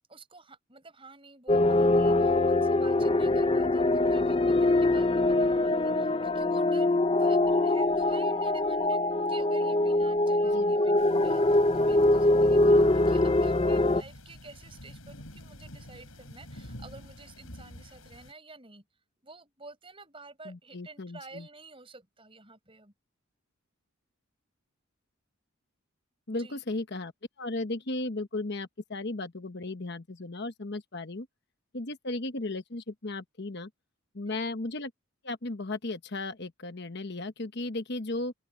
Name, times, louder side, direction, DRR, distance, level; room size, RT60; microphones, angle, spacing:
voice 1, 0.1-9.0 9.3-18.8 19.2-22.9 26.3-26.6 34.2-34.5, right 3 dB, 25° right, 6.7 m, -50 dB
sound 1, 1.5-14.0, left 2 dB, 25° left, 0.6 m, -23 dB
voice 2, 10.4-11.3 20.4-21.5 26.3-27.1 27.4-31.3 31.7-33.7 34.1-34.9 35.2-38.3, left 2 dB, 50° left, 1.1 m, -35 dB
sound 2, 11.0-18.3, left 1 dB, 70° left, 6.8 m, -49 dB
open air
head